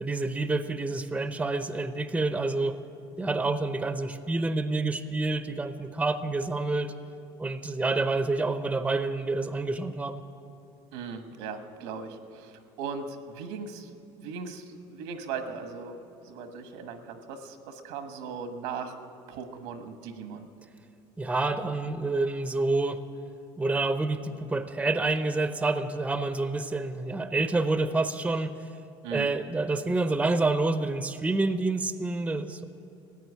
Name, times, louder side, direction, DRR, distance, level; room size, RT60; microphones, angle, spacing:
voice 1, 0.0-2.8 3.2-6.9 7.4-10.2 21.2-23.0 23.6-28.5 29.1-32.6, right 3 dB, 10° right, 11 dB, 0.6 m, -28 dB
voice 2, 10.9-13.9 14.2-16.0 16.2-18.9 19.3-20.5 29.0-29.3, right 5 dB, 85° right, 7 dB, 1.3 m, -38 dB
15.5 x 9.2 x 8.2 m, 2.6 s
supercardioid pair, 110°, 12 cm